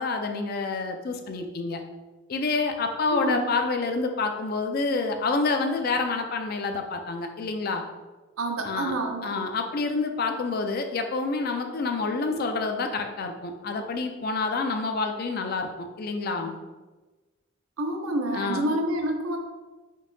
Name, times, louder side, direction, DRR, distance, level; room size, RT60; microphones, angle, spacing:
voice 1, 0.0-1.8 2.3-7.8 8.6-8.9 9.2-16.6 18.3-18.8, left 3 dB, 45° left, 5 dB, 0.4 m, -28 dB
voice 2, 3.1-3.5 8.4-9.4 17.8-19.4, right 1 dB, 80° right, 3 dB, 0.6 m, -28 dB
5.2 x 2.7 x 2.6 m, 1.2 s
head